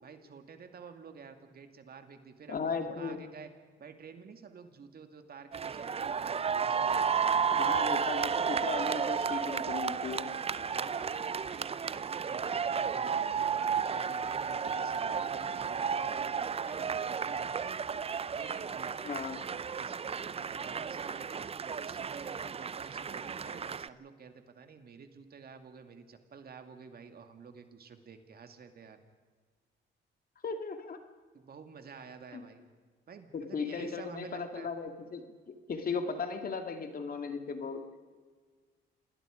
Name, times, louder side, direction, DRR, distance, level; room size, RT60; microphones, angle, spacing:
voice 1, 0.0-3.5 3.8-7.3 10.7-17.8 18.3-19.0 19.8-21.5 21.8-29.0 31.3-32.7 33.1-34.7, right 5 dB, 50° right, 7 dB, 2.2 m, -50 dB
voice 2, 2.5-3.3 7.5-10.3 19.0-19.4 30.4-31.0 32.3-32.5 33.3-38.1, left 5 dB, 45° left, 6 dB, 2.4 m, -37 dB
sound 1, 5.5-23.9, right 6 dB, 30° right, 0.6 m, -33 dB
27.5 x 19.0 x 5.1 m, 1.5 s
cardioid pair, 90°, 20 cm